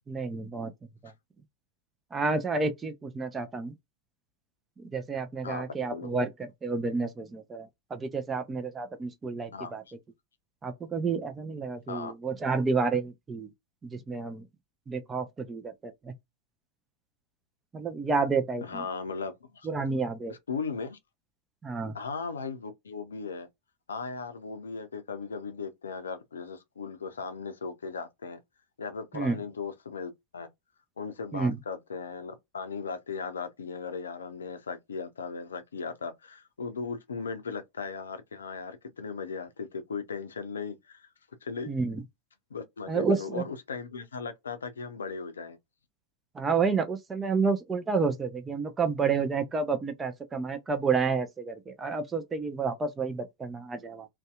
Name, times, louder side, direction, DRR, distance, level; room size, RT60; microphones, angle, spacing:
voice 1, 0.1-0.7 1.0-1.1 2.1-3.7 4.8-9.8 10.6-13.5 13.8-14.5 14.9-16.1 17.7-18.8 19.6-20.3 21.6-22.0 29.1-29.4 31.3-31.6 41.7-42.0 42.9-43.5 46.3-54.1, right 4 dB, 15° right, 0.5 m, -30 dB
voice 2, 18.6-19.7 20.3-21.0 21.9-23.5 23.9-28.4 28.8-30.5 31.0-41.1 41.4-41.7 42.5-45.6, left 5 dB, 70° left, 0.5 m, -37 dB
2.6 x 2.2 x 2.3 m
figure-of-eight pair, 90°, 0 cm